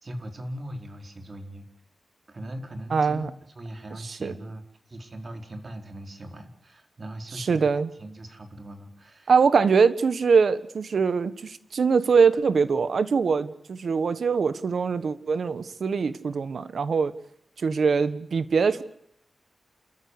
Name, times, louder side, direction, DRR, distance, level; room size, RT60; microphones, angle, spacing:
voice 1, 0.0-1.7 2.3-3.2 3.5-4.6 4.9-7.7 8.0-9.3, right 1 dB, 45° right, 5 dB, 4.5 m, -39 dB
voice 2, 2.9-3.3 4.1-4.3 7.3-7.9 9.3-17.1 17.6-18.8, right 5 dB, 75° right, 14 dB, 1.5 m, -23 dB
28.5 x 14.5 x 9.8 m, 0.72 s
wide cardioid pair, 85°, 0 cm